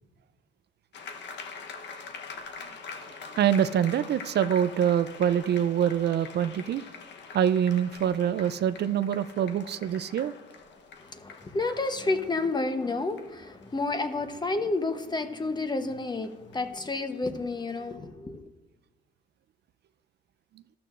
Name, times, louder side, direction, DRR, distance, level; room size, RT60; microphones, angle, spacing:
sound 1, 0.9-17.6, left 5 dB, 65° left, 1.0 m, -45 dB
voice 1, 3.4-6.8 7.3-10.3, right 9 dB, 60° right, 0.5 m, -25 dB
voice 2, 11.1-18.4, left 3 dB, 20° left, 0.9 m, -30 dB
13.5 x 12.5 x 2.5 m
cardioid pair, 90°, 20 cm